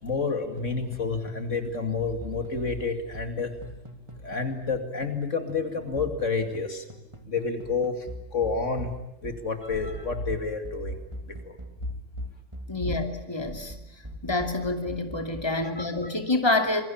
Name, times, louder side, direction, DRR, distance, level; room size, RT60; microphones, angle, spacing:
voice 1, 0.0-3.5 4.2-6.8 7.2-8.9 9.2-11.0 11.3-11.6 15.6-16.1, left 4 dB, 75° left, 7 dB, 2.8 m, -29 dB
sound 1, 0.6-1.5 1.7-5.2 5.5-15.6, equal, 25° right, 3.0 m, -43 dB
voice 2, 12.7-13.7 14.2-16.8, left 2 dB, 20° left, 5 dB, 2.8 m, -27 dB
27.0 x 22.0 x 8.7 m, 0.87 s
omnidirectional pair, 1.3 m